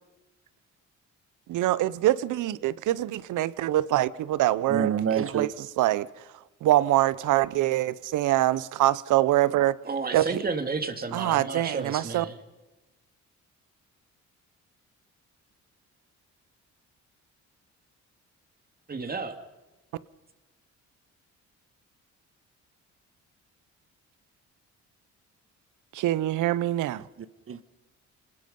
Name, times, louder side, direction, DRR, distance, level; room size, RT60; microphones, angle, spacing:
voice 1, 1.5-5.5 5.8-6.1 6.6-9.7 10.1-10.4 11.1-12.2 25.9-27.0, right 14 dB, 85° right, 0.8 m, -24 dB
voice 2, 4.7-5.5 27.2-27.6, right 7 dB, 45° right, 1.3 m, -28 dB
voice 3, 9.8-12.4 18.9-19.4, right 4 dB, 30° right, 2.5 m, -32 dB
26.0 x 20.0 x 5.4 m
cardioid pair, 90°, 30 cm